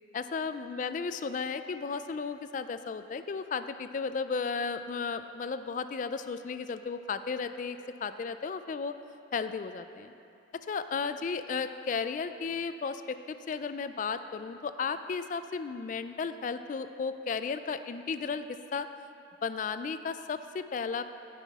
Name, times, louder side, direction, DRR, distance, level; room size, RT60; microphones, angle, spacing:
voice 1, 0.1-9.0 9.3-10.1 10.7-18.5 18.7-18.9 19.4-21.0, left 5 dB, 45° left, 11 dB, 0.3 m, -34 dB
17.0 x 5.8 x 3.6 m, 2.9 s
head